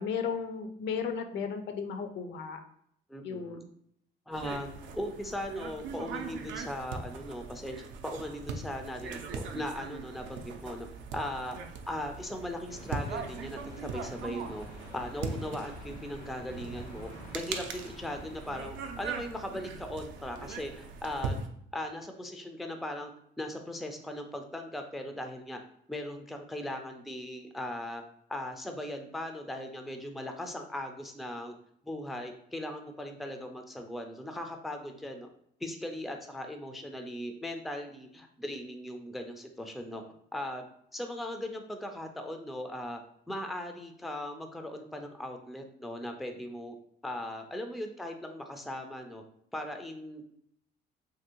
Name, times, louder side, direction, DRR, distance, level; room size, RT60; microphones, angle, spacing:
voice 1, 0.0-2.6 3.2-3.7, left 6 dB, 65° left, 7 dB, 0.5 m, -34 dB
voice 2, 3.1-3.6 4.3-10.9 11.1-11.6 11.9-14.7 14.9-21.4 21.7-23.1 23.4-25.6 25.9-28.0 28.3-31.5 31.8-35.3 35.6-40.0 40.3-40.6 40.9-43.0 43.3-46.7 47.0-49.2 49.5-50.4, left 1 dB, ahead, 5 dB, 0.3 m, -38 dB
sound 1, 4.3-21.5, right 5 dB, 70° right, 0.4 m, -40 dB
sound 2, 12.7-19.2, left 1 dB, 85° left, 1.0 m, -51 dB
2.9 x 2.6 x 2.7 m, 0.70 s
cardioid pair, 95°, 20 cm